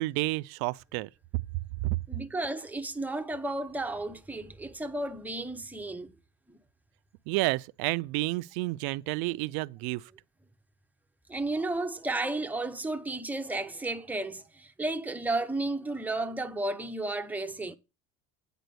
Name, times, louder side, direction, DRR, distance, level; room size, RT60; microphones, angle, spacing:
voice 1, 0.0-2.0 7.3-10.0, right 22 dB, 70° right, 0.5 m, -30 dB
voice 2, 2.1-6.1 6.5-6.6 11.3-17.8, right 2 dB, 5° right, 0.5 m, -33 dB
9.2 x 4.1 x 6.7 m
cardioid pair, 135°, 39 cm